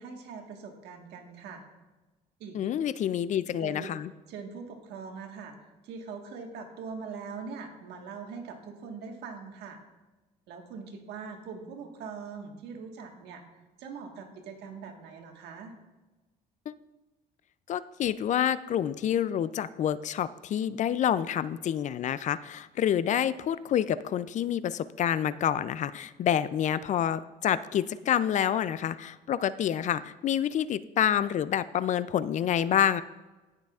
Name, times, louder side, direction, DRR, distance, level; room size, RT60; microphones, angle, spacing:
voice 1, 0.0-1.6 2.4-2.7 3.6-4.0 4.3-5.5 5.8-9.8 10.5-13.4 13.8-15.7, right 5 dB, 80° right, 3 dB, 1.5 m, -42 dB
voice 2, 2.5-4.1 16.7-16.8 17.7-33.0, left 10 dB, 45° left, 16 dB, 0.4 m, -28 dB
16.5 x 6.6 x 2.4 m, 1.2 s
cardioid pair, 110°, 17 cm